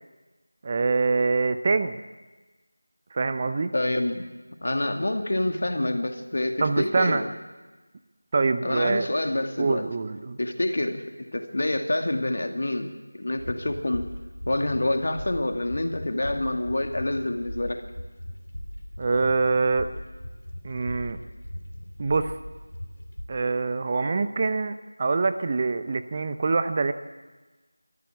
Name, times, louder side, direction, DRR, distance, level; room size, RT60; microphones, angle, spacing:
voice 1, 0.6-2.0 3.1-3.7 6.6-7.3 8.3-9.1 9.6-10.4 19.0-19.9 20.6-21.2 22.0-22.3 23.3-26.9, right 4 dB, 25° right, 11 dB, 0.7 m, -25 dB
voice 2, 3.7-4.2 4.6-7.3 8.6-9.8 10.4-11.0 11.3-14.1 14.5-17.8, left 1 dB, 50° left, 5 dB, 2.2 m, -27 dB
sound 1, 13.4-23.2, equal, 75° left, 3.1 m, -39 dB
24.0 x 13.5 x 8.3 m, 1.2 s
figure-of-eight pair, 170°, 0 cm